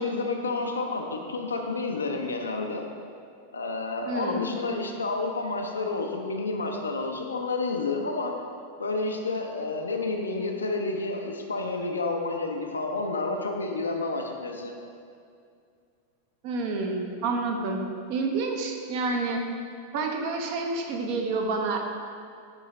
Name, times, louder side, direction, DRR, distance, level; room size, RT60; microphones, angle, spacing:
voice 1, 0.0-2.9 3.5-8.3 8.8-14.7, left 3 dB, 75° left, 2 dB, 0.6 m, -30 dB
voice 2, 4.0-4.5 16.4-17.8 18.1-19.4 19.9-21.8, right 3 dB, 45° right, 3 dB, 0.8 m, -28 dB
8.8 x 4.7 x 3.2 m, 2.3 s
figure-of-eight pair, 90°, 0 cm